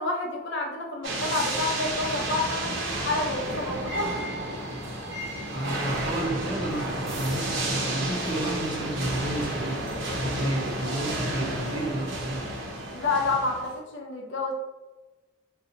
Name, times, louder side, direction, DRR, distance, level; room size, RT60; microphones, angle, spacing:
voice 1, 0.0-4.1 10.4-10.5 12.9-14.5, left 3 dB, 65° left, 1 dB, 0.6 m, -29 dB
sound 1, 1.0-13.7, right 1 dB, 70° right, 0.8 m, -31 dB
voice 2, 5.5-9.8 10.2-12.5, right 1 dB, 25° right, -1 dB, 0.6 m, -32 dB
2.7 x 2.3 x 3.8 m, 1.1 s
head